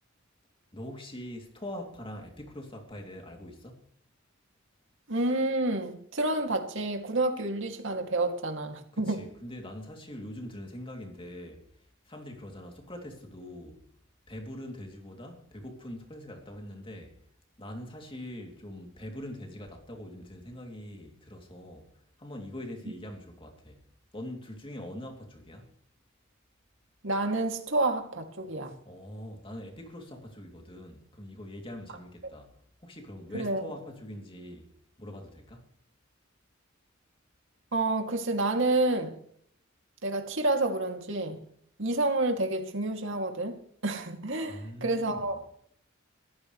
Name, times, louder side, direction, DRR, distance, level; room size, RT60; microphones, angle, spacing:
voice 1, 0.7-3.9 8.9-11.7 12.0-13.8 14.3-17.1 17.6-21.9 22.2-23.8 24.1-25.7 28.8-32.5 32.8-34.7 35.0-35.6 44.5-45.3, left 1 dB, 25° left, 3.0 m, -43 dB
voice 2, 5.1-9.2 27.0-28.7 33.3-33.6 37.7-39.1 40.0-41.4 41.8-43.5 43.8-45.4, right 2 dB, 65° right, 2.7 m, -29 dB
23.5 x 15.0 x 3.3 m
head